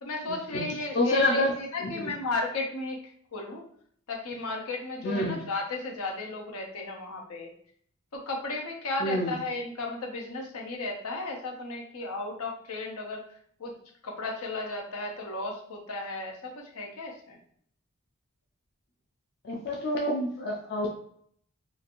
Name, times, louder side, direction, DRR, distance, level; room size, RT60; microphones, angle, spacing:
voice 1, 0.0-3.0 3.3-3.6 4.1-7.5 8.1-13.7 14.0-17.4, left 2 dB, 80° left, 0 dB, 0.7 m, -34 dB
voice 2, 0.9-1.5 1.8-2.1 5.0-5.4 9.0-9.3 19.4-20.9, left 1 dB, 45° left, -1 dB, 0.4 m, -27 dB
3.0 x 2.5 x 2.5 m, 0.62 s
head